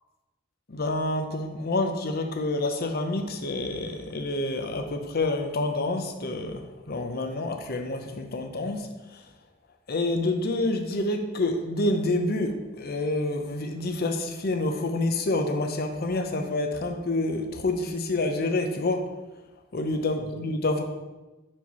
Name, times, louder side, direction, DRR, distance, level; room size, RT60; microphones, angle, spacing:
voice 1, 0.7-8.9 9.9-19.1 19.7-20.8, left 2 dB, 50° left, 5 dB, 0.7 m, -28 dB
4.6 x 4.5 x 5.4 m, 1.1 s
head